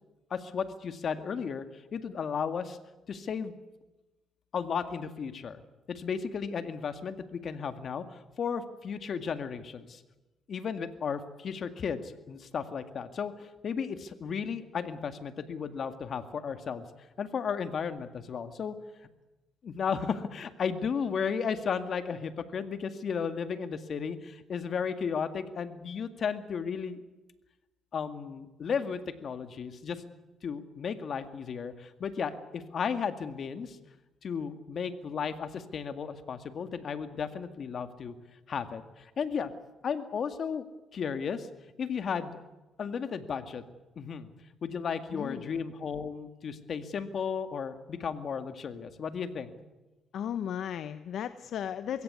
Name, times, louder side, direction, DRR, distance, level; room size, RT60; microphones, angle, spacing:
voice 1, 0.3-2.8 3.1-3.5 4.5-5.6 5.9-10.0 10.5-16.9 17.2-18.8 19.6-27.0 27.9-30.0 30.4-33.8 34.2-38.1 38.5-39.5 39.8-40.7 40.9-41.5 41.8-42.4 42.8-43.6 44.0-44.3 44.6-49.5, left 6 dB, 55° left, 9 dB, 2.0 m, -34 dB
voice 2, 45.1-45.6 50.1-52.0, left 9 dB, 70° left, 12 dB, 0.8 m, -35 dB
22.0 x 16.5 x 9.6 m, 1.1 s
cardioid pair, 90°, 0 cm